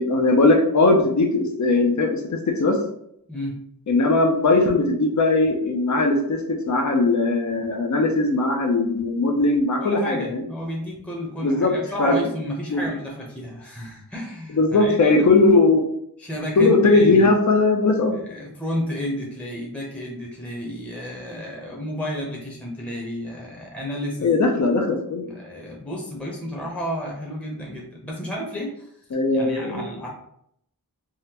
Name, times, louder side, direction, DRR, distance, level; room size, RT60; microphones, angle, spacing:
voice 1, 0.0-2.8 3.9-10.4 11.4-12.1 12.7-12.8 14.5-15.8 16.6-18.2 24.2-25.2 29.1-29.8, left 3 dB, 50° left, 3 dB, 0.6 m, -19 dB
voice 2, 9.8-15.3 16.2-17.4 18.1-24.3 25.2-30.1, equal, 5° left, -2 dB, 0.8 m, -32 dB
3.6 x 2.1 x 2.8 m, 0.73 s
wide cardioid pair, 45°, 37 cm